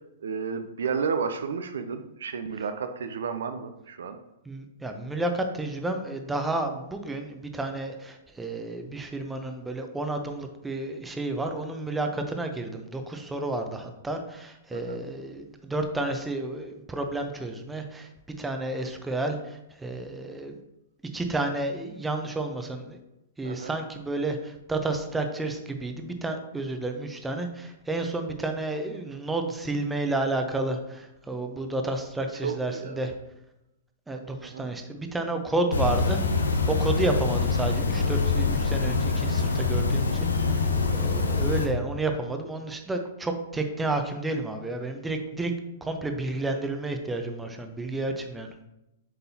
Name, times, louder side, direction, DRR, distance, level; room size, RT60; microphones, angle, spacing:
voice 1, 0.2-4.2 14.7-15.0 23.4-23.7 32.4-33.1 34.4-34.7, right 6 dB, 70° right, 8 dB, 0.6 m, -32 dB
voice 2, 4.5-18.1 18.4-20.6 21.1-23.0 23.4-33.1 34.1-45.5 45.8-48.5, right 2 dB, 10° right, 5 dB, 0.8 m, -31 dB
sound 1, 35.7-41.7, left 4 dB, 80° left, 0.8 m, -25 dB
7.9 x 5.4 x 2.9 m, 0.90 s
figure-of-eight pair, 110°, 0 cm